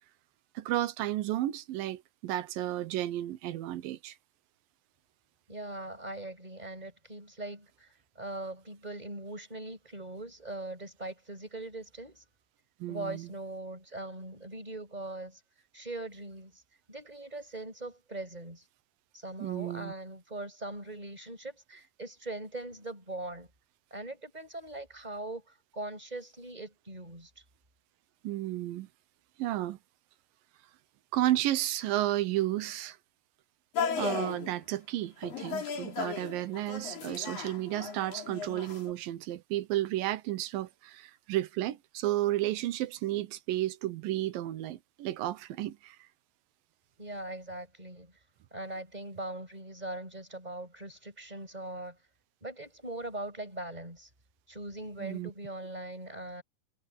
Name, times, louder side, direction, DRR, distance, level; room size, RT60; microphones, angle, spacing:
voice 1, 0.6-4.2 12.8-13.3 19.4-19.9 28.2-28.9 29.4-29.8 31.1-33.0 34.0-46.0 55.0-55.3, right 14 dB, 90° right, 2.7 m, -32 dB
voice 2, 5.5-12.2 12.9-15.4 15.7-16.6 16.9-18.6 19.1-23.5 23.9-25.4 25.7-27.3 47.0-48.1 48.5-52.0 52.4-54.1 54.5-56.4, right 2 dB, 10° right, 7.4 m, -41 dB
sound 1, 33.7-34.6 35.2-38.9, left 6 dB, 85° left, 5.4 m, -36 dB
omnidirectional pair, 3.9 m